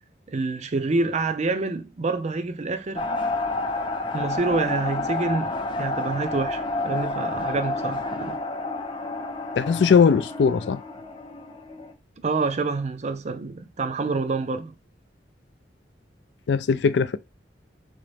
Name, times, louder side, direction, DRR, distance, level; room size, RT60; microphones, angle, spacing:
voice 1, 0.3-3.1 4.1-8.4 12.2-14.7, right 3 dB, 40° right, 0.5 m, -27 dB
sound 1, 3.0-11.9, left 2 dB, 30° left, 0.6 m, -30 dB
voice 2, 9.6-10.8 16.5-17.2, left 6 dB, 70° left, 0.4 m, -19 dB
4.0 x 3.7 x 3.4 m
head